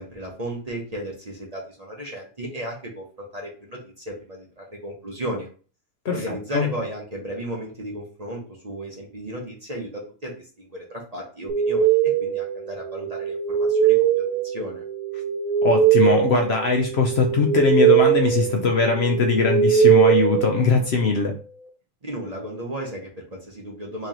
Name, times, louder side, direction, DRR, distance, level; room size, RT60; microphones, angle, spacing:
voice 1, 0.0-5.5 6.1-14.0 14.4-14.8 22.0-24.1, right 1 dB, 35° right, -1 dB, 0.8 m, -34 dB
voice 2, 6.0-6.7 15.6-21.3, left 4 dB, 60° left, 2 dB, 0.7 m, -21 dB
sound 1, 11.5-21.2, right 9 dB, 80° right, 1.1 m, -21 dB
3.1 x 2.9 x 3.7 m, 0.39 s
omnidirectional pair, 1.5 m